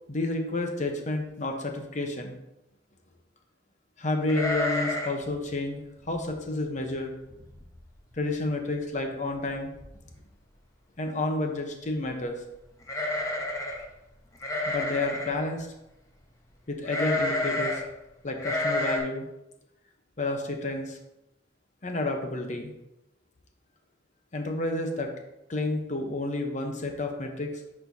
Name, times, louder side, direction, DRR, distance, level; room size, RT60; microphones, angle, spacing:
voice 1, 0.1-2.4 4.0-7.1 8.2-9.7 11.0-12.4 14.7-15.7 16.7-17.8 18.2-19.2 20.2-21.0 21.8-22.7 24.3-25.1 25.5-27.5, left 2 dB, 40° left, 3 dB, 0.9 m, -30 dB
sound 1, 4.3-5.2 5.5-5.6 6.1-6.3 6.9-7.0 7.3-7.8 8.1-8.2 9.3-9.4 9.7-10.2 12.8-13.8 14.4-15.4 16.9-17.8 18.4-19.0, left 1 dB, 15° left, 0.9 m, -29 dB
10.5 x 4.4 x 2.8 m, 0.89 s
head